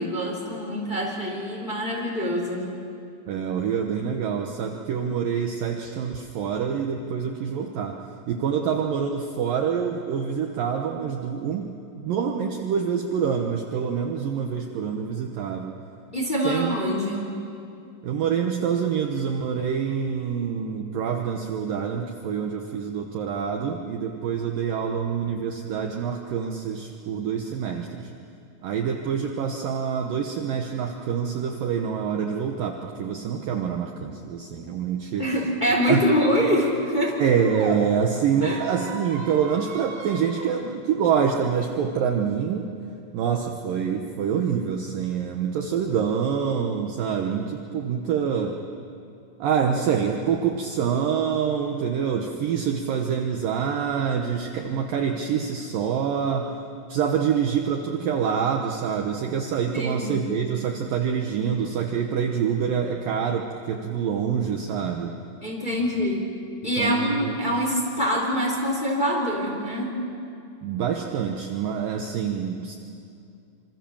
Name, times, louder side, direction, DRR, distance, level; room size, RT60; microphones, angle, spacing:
voice 1, 0.0-2.7 16.1-17.3 35.2-37.2 38.4-38.6 59.7-60.2 65.4-66.3 66.6-69.9, equal, 10° left, -1 dB, 3.1 m, -25 dB
voice 2, 3.3-8.0 8.3-15.7 16.4-16.8 18.0-28.1 28.6-35.3 35.9-36.0 37.2-42.7 43.1-48.6 49.4-56.5 56.9-65.2 66.0-66.1 66.8-67.4 70.6-72.8, right 7 dB, 80° right, 3 dB, 2.0 m, -26 dB
Squeak, 35.8-37.8 38.3-40.4, right 4 dB, 50° right, 3.9 m, -38 dB
27.0 x 26.5 x 7.2 m, 2.6 s
omnidirectional pair, 5.7 m